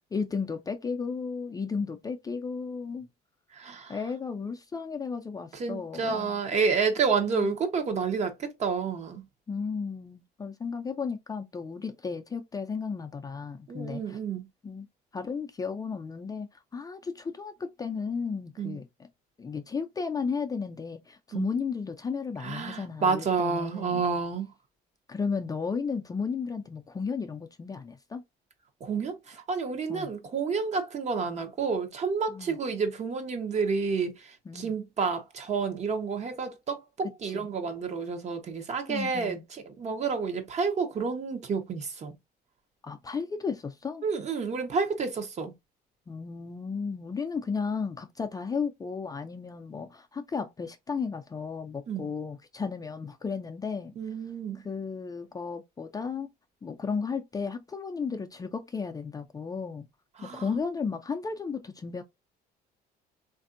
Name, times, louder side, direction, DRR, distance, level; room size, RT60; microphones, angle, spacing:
voice 1, 0.1-3.1 3.9-6.4 7.3-7.5 9.5-14.2 14.6-14.9 15.1-19.1 19.4-24.1 25.1-28.2 29.9-30.1 32.3-32.6 34.5-34.7 37.2-37.5 38.9-39.4 42.8-44.0 46.1-53.9 54.6-56.3 56.6-59.9 60.2-62.0, left 5 dB, 20° left, 0.4 m, -34 dB
voice 2, 3.5-3.9 5.5-9.2 13.7-14.5 18.6-18.8 21.3-21.5 22.4-24.5 28.8-42.1 44.0-45.5 51.9-52.1 54.0-54.6 60.2-60.4, right 5 dB, 45° right, 0.9 m, -30 dB
3.3 x 2.6 x 2.5 m
cardioid pair, 110°, 17 cm